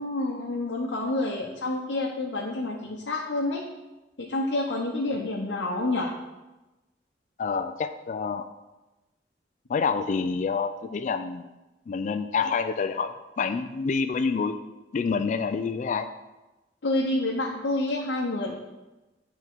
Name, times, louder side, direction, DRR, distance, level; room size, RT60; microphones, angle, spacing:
voice 1, 0.0-3.6 4.2-6.2 16.8-18.6, left 2 dB, 85° left, -2 dB, 0.8 m, -28 dB
voice 2, 7.4-8.5 9.7-11.5 11.9-14.5 14.9-16.1, left 5 dB, 45° left, 8 dB, 0.3 m, -27 dB
9.0 x 3.6 x 4.5 m, 1.1 s
head